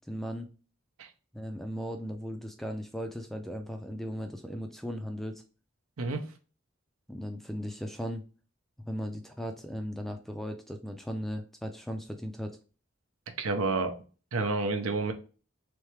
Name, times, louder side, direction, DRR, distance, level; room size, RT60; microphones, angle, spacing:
voice 1, 0.1-0.5 1.3-5.4 7.1-8.2 8.8-12.6, equal, ahead, 5 dB, 0.3 m, -37 dB
voice 2, 13.4-13.9 14.3-15.1, right 3 dB, 80° right, 7 dB, 0.7 m, -29 dB
3.5 x 3.2 x 3.2 m, 0.36 s
head